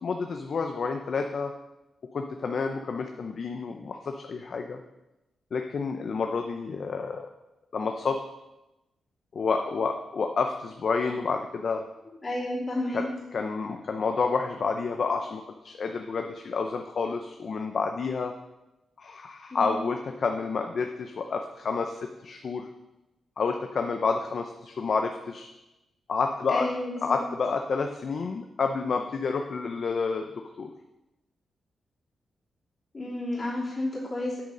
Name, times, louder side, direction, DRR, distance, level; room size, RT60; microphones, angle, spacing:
voice 1, 0.0-1.5 2.1-4.8 5.5-7.3 7.7-8.2 9.3-11.8 12.9-13.1 13.3-18.3 19.0-22.7 23.4-25.5 26.1-26.7 27.0-30.3 30.6-30.7, left 4 dB, 50° left, 5 dB, 0.6 m, -29 dB
voice 2, 12.2-13.1 19.5-19.7 26.5-27.2 32.9-34.4, left 1 dB, 30° left, -7 dB, 3.1 m, -31 dB
8.6 x 6.4 x 5.2 m, 0.97 s
wide cardioid pair, 130°, 0 cm